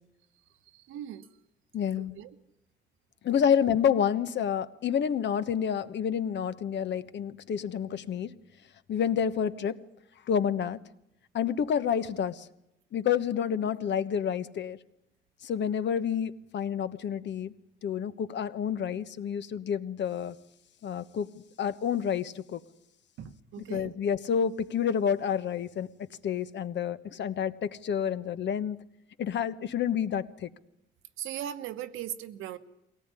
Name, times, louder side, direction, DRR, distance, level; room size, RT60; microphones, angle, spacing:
voice 1, 0.7-1.3 2.0-2.3 23.2-23.9 31.2-32.6, right 11 dB, 90° right, 9 dB, 1.4 m, -39 dB
voice 2, 1.7-2.2 3.2-8.3 8.9-9.8 10.3-10.8 11.3-12.5 12.9-14.8 15.4-17.5 17.8-20.3 20.8-21.3 21.6-22.6 23.7-25.9 26.2-28.8 29.2-30.5, left 8 dB, 65° left, 12 dB, 1.2 m, -29 dB
22.0 x 18.5 x 9.8 m, 0.83 s
cardioid pair, 90°, 20 cm